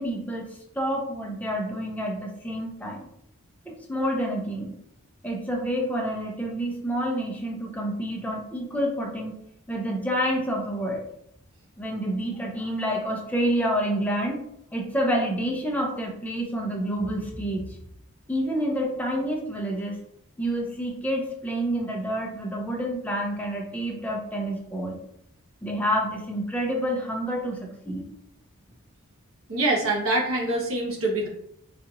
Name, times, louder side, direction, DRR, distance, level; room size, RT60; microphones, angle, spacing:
voice 1, 0.0-3.1 3.7-4.8 5.2-9.4 9.7-11.0 11.8-14.4 14.7-17.8 18.3-20.0 20.4-25.0 25.6-28.0, equal, 5° left, -1 dB, 0.5 m, -28 dB
voice 2, 29.5-31.3, right 2 dB, 75° right, -1 dB, 1.0 m, -25 dB
4.0 x 2.4 x 2.9 m, 0.73 s
head